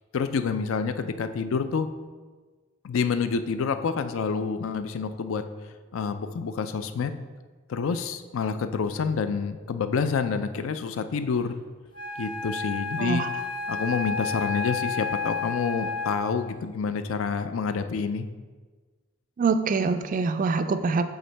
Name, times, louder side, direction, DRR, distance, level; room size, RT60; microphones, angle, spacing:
voice 1, 0.1-1.9 2.8-5.4 5.9-7.1 7.7-11.6 12.2-13.2 13.7-18.3, left 5 dB, 70° left, 10 dB, 0.4 m, -28 dB
Wind instrument woodwind instrument, 11.9-16.5, left 4 dB, 25° left, 0.7 m, -31 dB
voice 2, 19.4-21.0, right 4 dB, 40° right, 10 dB, 0.3 m, -24 dB
7.9 x 3.8 x 3.3 m, 1.4 s
head